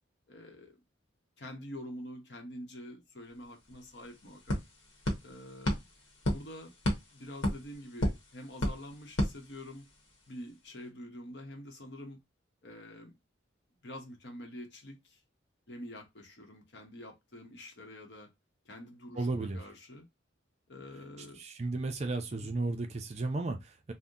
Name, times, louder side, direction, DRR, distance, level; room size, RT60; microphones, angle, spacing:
voice 1, 0.3-0.8 1.4-4.6 5.2-5.8 6.3-6.7 7.1-9.8 10.3-12.2 12.6-13.1 13.8-15.2 15.7-18.3 18.6-20.1 20.7-21.4 22.3-22.5, left 1 dB, 60° left, 0.9 m, -46 dB
sound 1, 3.4-3.5 3.7-10.1, left 1 dB, 85° left, 1.0 m, -35 dB
voice 2, 19.2-19.6 21.4-23.9, right 2 dB, 35° right, 0.4 m, -34 dB
2.7 x 2.1 x 3.6 m
head